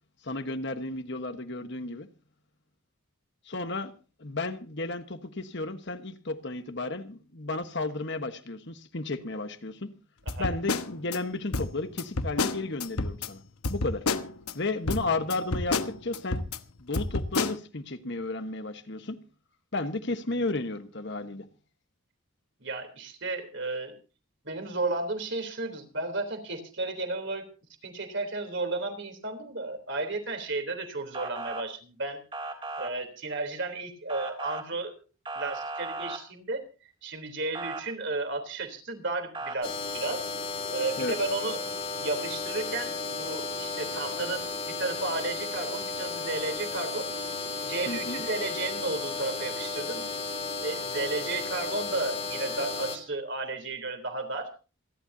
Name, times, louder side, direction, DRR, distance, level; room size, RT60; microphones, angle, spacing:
voice 1, 0.2-2.1 3.4-3.9 4.2-9.9 10.4-13.4 13.7-14.1 14.5-16.4 16.8-19.2 19.7-21.5 41.0-41.1 47.8-48.2, left 2 dB, 50° left, 1.3 m, -33 dB
sound 1, 10.3-11.2 11.5-13.3 13.6-14.5 14.9-16.6 16.9-17.6, left 3 dB, 85° left, 1.1 m, -30 dB
voice 2, 22.6-23.9 24.4-27.5 27.8-32.2 32.8-34.9 35.4-36.6 37.0-40.2 40.7-41.6 42.0-47.1 47.6-50.0 50.6-54.5, right 3 dB, 55° right, 3.5 m, -33 dB
Motor vehicle (road) / Siren, 31.1-31.6 32.3-32.9 34.1-34.6 35.3-36.2 37.5-37.8 39.3-39.6, right 2 dB, 25° right, 3.2 m, -36 dB
sound 2, 39.6-53.0, left 4 dB, 25° left, 2.8 m, -34 dB
27.5 x 11.5 x 2.8 m
head